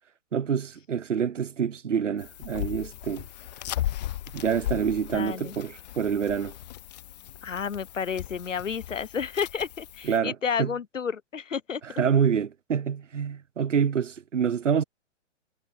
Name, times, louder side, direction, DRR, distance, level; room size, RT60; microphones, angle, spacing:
voice 1, 0.3-3.3 4.3-6.5 10.0-10.7 11.8-14.8, right 7 dB, 75° right, 0.8 m, -27 dB
sound 1, 2.2-10.2, left 13 dB, 35° left, 0.6 m, -37 dB
voice 2, 5.1-5.6 7.4-11.8, left 6 dB, 80° left, 0.8 m, -31 dB
figure-of-eight pair, 115°, 37 cm